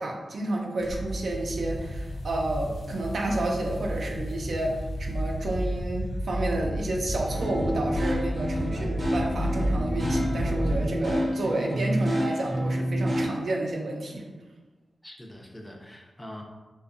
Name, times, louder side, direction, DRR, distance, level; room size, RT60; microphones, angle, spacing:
voice 1, 0.0-14.3, right 1 dB, 75° right, 0 dB, 0.4 m, -30 dB
sound 1, 0.8-10.9, equal, 90° left, 0.4 m, -31 dB
sound 2, 7.2-13.2, equal, 45° right, 0.8 m, -29 dB
voice 2, 8.6-9.0 15.0-16.4, left 1 dB, 15° left, 0 dB, 0.4 m, -44 dB
2.7 x 2.2 x 2.5 m, 1.2 s
cardioid pair, 60°, 0 cm